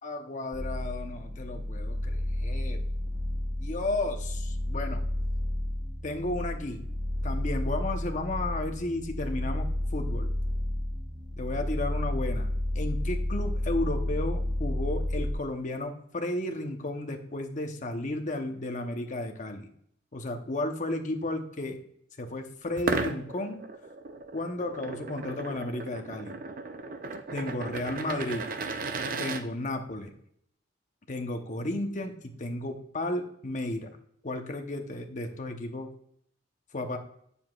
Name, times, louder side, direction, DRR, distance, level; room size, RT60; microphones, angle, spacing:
voice 1, 0.0-2.8 3.6-5.0 6.0-6.8 7.2-10.3 11.4-12.5 12.7-19.7 20.1-21.8 22.2-23.6 24.3-26.4 27.3-28.5 29.2-30.1 31.1-33.9 34.2-35.9 36.7-37.0, left 2 dB, 45° left, 4 dB, 0.9 m, -33 dB
sound 1, 0.5-15.3, left 1 dB, 20° right, 0.8 m, -31 dB
sound 2, 22.7-29.4, right 3 dB, 50° right, 0.6 m, -35 dB
7.9 x 7.0 x 2.4 m, 0.66 s
head